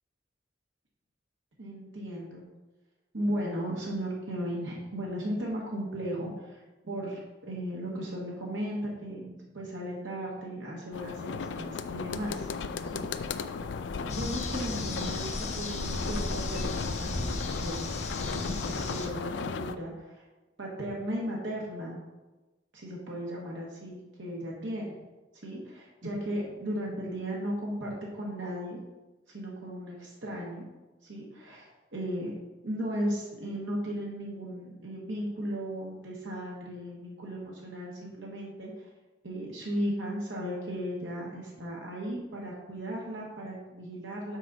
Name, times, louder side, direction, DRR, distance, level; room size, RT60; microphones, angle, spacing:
voice 1, 1.6-2.4 3.1-12.5 12.9-13.3 14.0-17.8 18.2-20.2 20.6-22.0 22.7-24.9 25.4-28.8 29.3-30.6 31.0-32.3 32.6-38.7 39.2-44.4, equal, 90° right, -3 dB, 1.3 m, -36 dB
sound 1, 10.9-19.8, left 5 dB, 80° left, 0.4 m, -36 dB
sound 2, 14.1-19.1, left 2 dB, 40° left, 0.7 m, -34 dB
6.1 x 3.9 x 5.9 m, 1.1 s
head